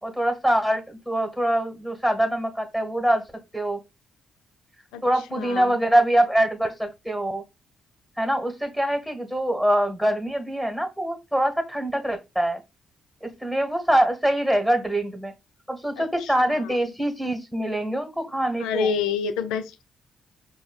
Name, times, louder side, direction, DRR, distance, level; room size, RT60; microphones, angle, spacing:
voice 1, 0.0-3.2 3.5-3.8 5.0-7.4 8.2-12.6 13.2-15.3 15.7-18.9, right 1 dB, 5° right, 1.2 m, -24 dB
voice 2, 5.3-5.8 16.0-16.7 18.6-19.8, left 6 dB, 80° left, 0.4 m, -28 dB
5.1 x 2.2 x 2.2 m
hypercardioid pair, 50°, 0 cm